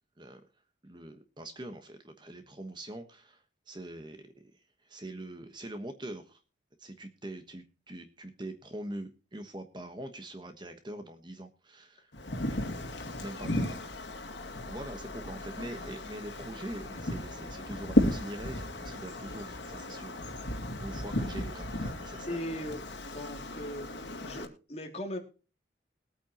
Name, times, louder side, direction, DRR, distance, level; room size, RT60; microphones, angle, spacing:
voice 1, 0.8-6.4 6.8-12.1 12.5-12.9 13.2-14.3 14.6-20.2 20.6-22.4, right 1 dB, 25° right, 7 dB, 1.2 m, -43 dB
Wind, 12.1-24.5, left 1 dB, 75° left, 2.4 m, -34 dB
voice 2, 22.3-25.2, left 1 dB, 35° left, 3 dB, 2.6 m, -39 dB
21.5 x 8.9 x 2.9 m, 0.34 s
head